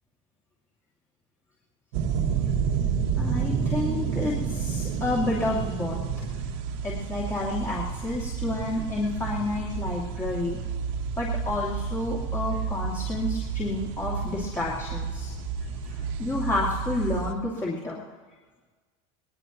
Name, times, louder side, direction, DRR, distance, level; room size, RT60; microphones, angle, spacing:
sound 1, 1.9-17.3, right 6 dB, 65° right, 1.7 m, -30 dB
voice 1, 3.2-6.0 6.8-10.6 11.2-15.3 15.9-18.0, left 2 dB, 15° left, -6 dB, 2.5 m, -30 dB
20.5 x 20.0 x 3.0 m, 1.4 s
supercardioid pair, 145°, 18 cm